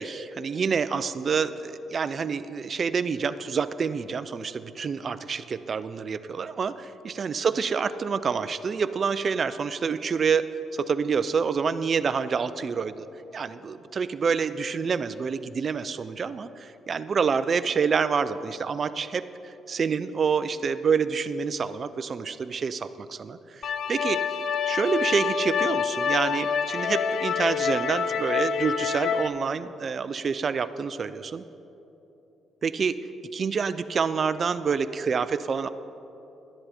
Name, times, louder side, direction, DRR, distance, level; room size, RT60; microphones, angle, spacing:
voice 1, 0.0-10.5 10.7-13.1 13.3-24.2 24.7-31.4 32.6-33.0 33.3-35.7, right 6 dB, 45° right, 14 dB, 0.4 m, -27 dB
sound 1, 23.6-29.3, left 7 dB, 65° left, 0.5 m, -27 dB
12.0 x 10.0 x 4.3 m, 2.9 s
cardioid pair, 90°, 0 cm